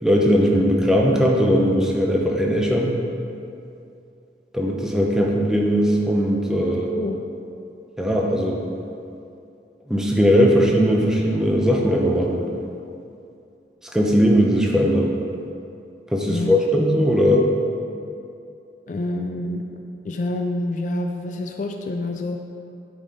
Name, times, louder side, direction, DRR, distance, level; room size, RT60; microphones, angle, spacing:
voice 1, 0.0-2.9 4.5-6.9 8.0-8.6 9.9-12.4 13.9-15.1 16.1-17.5, equal, 5° right, -1 dB, 0.7 m, -19 dB
voice 2, 6.9-7.2 16.2-16.6 18.9-19.6 20.0-22.5, left 2 dB, 45° left, 3 dB, 0.3 m, -27 dB
9.3 x 4.2 x 5.1 m, 2.6 s
head